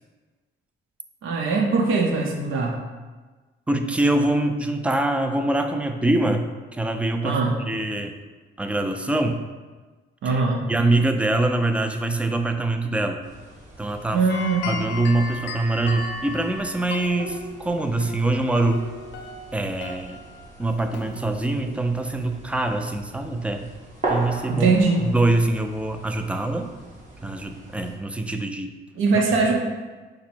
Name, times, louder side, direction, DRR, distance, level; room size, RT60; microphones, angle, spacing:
voice 1, 1.2-2.8 7.2-7.6 10.2-10.7 14.1-14.7 24.5-25.1 29.0-29.6, right 4 dB, 80° right, 2 dB, 0.6 m, -21 dB
voice 2, 3.7-6.5 6.7-7.4 7.7-8.1 8.6-9.4 10.2-10.4 10.7-13.2 13.8-14.2 14.7-18.9 19.5-20.2 20.6-23.7 24.1-26.7 27.2-28.7 29.1-29.2, right 2 dB, 5° right, 6 dB, 0.3 m, -24 dB
sound 1, 13.2-28.0, right 2 dB, 40° right, 1.4 m, -39 dB
sound 2, 14.3-21.8, left 3 dB, 70° left, 0.6 m, -36 dB
5.0 x 2.0 x 4.4 m, 1.3 s
cardioid pair, 90°, 20 cm